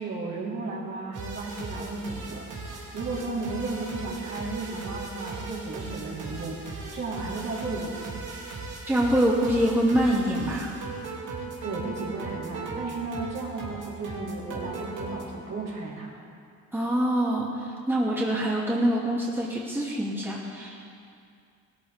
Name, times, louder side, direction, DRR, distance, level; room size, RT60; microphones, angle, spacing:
voice 1, 0.0-8.1 11.4-16.2, right 3 dB, 60° right, -6 dB, 4.0 m, -34 dB
sound 1, 1.1-15.2, right 3 dB, 80° right, 3.0 m, -38 dB
voice 2, 8.9-10.7 16.7-20.8, right 1 dB, 5° right, -5 dB, 2.4 m, -25 dB
18.0 x 13.0 x 3.6 m, 2.4 s
cardioid pair, 90°, 30 cm